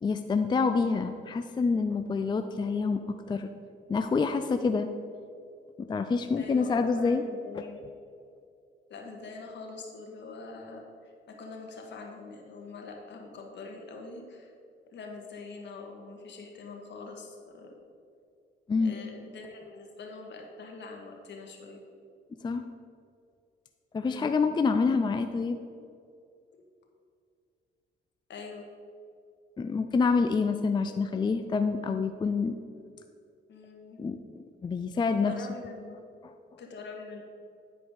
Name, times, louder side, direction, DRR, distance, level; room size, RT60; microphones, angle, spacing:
voice 1, 0.0-3.5 3.9-4.9 5.8-7.2 18.7-19.0 22.4-22.6 23.9-25.6 29.6-32.5 34.0-34.2 34.6-35.3, left 4 dB, 25° left, 8 dB, 0.4 m, -27 dB
voice 2, 6.4-7.8 8.9-14.5 14.9-17.7 18.8-21.8 24.0-24.3 28.3-28.6 33.5-34.0 35.2-36.0 36.6-37.2, left 3 dB, 65° left, 1 dB, 1.6 m, -44 dB
10.0 x 4.9 x 5.3 m, 2.4 s
cardioid pair, 90°, 20 cm